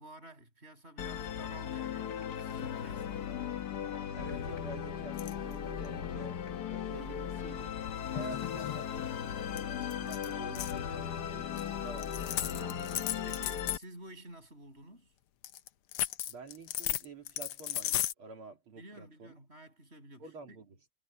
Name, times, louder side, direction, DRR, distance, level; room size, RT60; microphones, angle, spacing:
voice 1, 0.0-3.3 8.1-8.3 12.5-15.1 18.8-20.6, right 1 dB, 30° right, 7.8 m, -52 dB
Musical instrument, 1.0-13.8, left 9 dB, 55° left, 1.4 m, -37 dB
sound 1, 1.1-6.6, left 5 dB, 35° left, 3.3 m, -56 dB
voice 2, 4.1-7.8 8.1-9.1 9.4-12.1 12.5-12.8 16.3-19.3 20.2-20.8, right 4 dB, 75° right, 3.6 m, -49 dB
sound 2, 5.2-5.5 7.9-9.3 9.6-9.7 9.9-10.8 11.6-11.7 12.0-13.8 15.4-18.1, left 12 dB, 80° left, 1.8 m, -35 dB
omnidirectional pair, 2.4 m